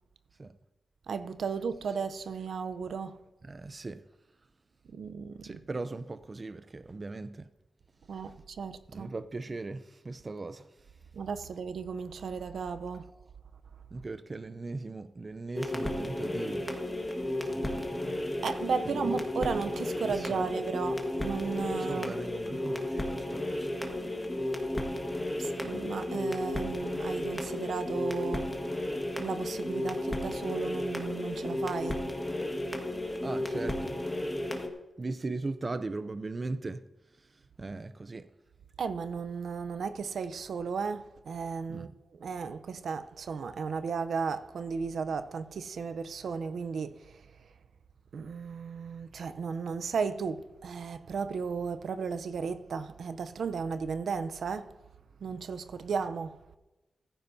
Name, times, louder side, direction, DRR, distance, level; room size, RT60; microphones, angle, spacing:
voice 1, 1.1-3.1 4.9-5.6 8.1-9.1 11.2-13.0 18.4-22.1 25.4-28.5 29.2-32.0 38.8-41.9 42.2-47.0 48.1-54.7 55.2-56.4, right 5 dB, 80° right, 0.6 m, -34 dB
voice 2, 3.4-4.0 5.4-7.5 8.9-10.7 13.9-16.7 17.4-18.3 18.9-19.1 20.0-20.5 21.7-23.7 33.2-34.0 35.0-36.8 37.6-38.3 41.7-42.0, right 3 dB, 35° right, 0.5 m, -39 dB
sound 1, 15.5-34.7, left 1 dB, 15° left, 1.6 m, -33 dB
16.0 x 14.5 x 2.7 m
wide cardioid pair, 110°, 0 cm